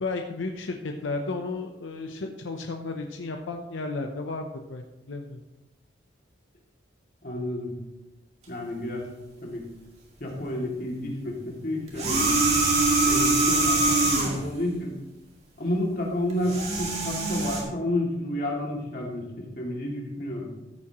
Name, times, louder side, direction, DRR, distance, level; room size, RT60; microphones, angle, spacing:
voice 1, 0.0-5.4, left 3 dB, 85° left, 4 dB, 0.8 m, -33 dB
voice 2, 7.2-7.8 8.5-9.1 9.4-9.7 10.2-12.3 13.1-14.9 15.6-20.5, left 1 dB, 50° left, -2 dB, 2.4 m, -30 dB
sound 1, 11.9-14.5 16.3-17.6, right 2 dB, 35° right, 2.0 m, -23 dB
14.0 x 8.5 x 3.0 m, 0.98 s
head